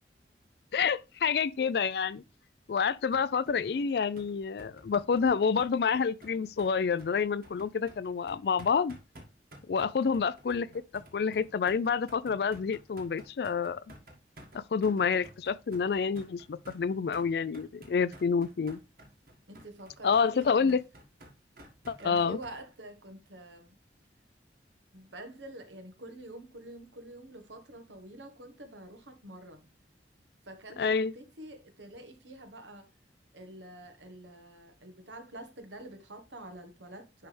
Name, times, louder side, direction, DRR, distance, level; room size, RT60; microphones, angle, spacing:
voice 1, 0.7-2.2 2.7-8.9 9.7-10.7 10.9-13.8 14.5-18.8 20.0-20.8 21.9-22.4 30.8-31.1, left 6 dB, 60° left, 0.4 m, -28 dB
sound 1, 3.1-22.5, right 1 dB, 55° right, 1.7 m, -53 dB
voice 2, 19.5-20.8 22.0-23.8 24.9-29.7 30.4-32.9 33.3-37.3, right 1 dB, 85° right, 1.3 m, -47 dB
10.0 x 3.4 x 3.3 m
head